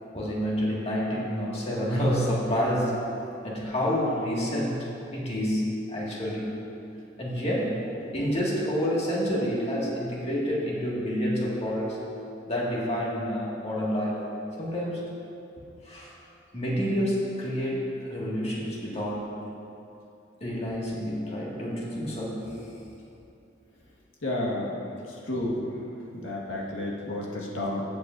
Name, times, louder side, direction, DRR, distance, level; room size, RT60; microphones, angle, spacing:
voice 1, 0.1-3.0 3.4-4.8 5.1-6.5 7.2-12.0 12.5-14.3 14.6-15.0 15.8-16.1 16.5-19.3 20.4-22.5 26.8-26.9, equal, 35° left, -5 dB, 2.0 m, -28 dB
voice 2, 24.2-24.7 25.1-25.8 26.1-27.8, left 1 dB, 75° left, -3 dB, 1.6 m, -31 dB
15.0 x 8.1 x 2.6 m, 2.7 s
head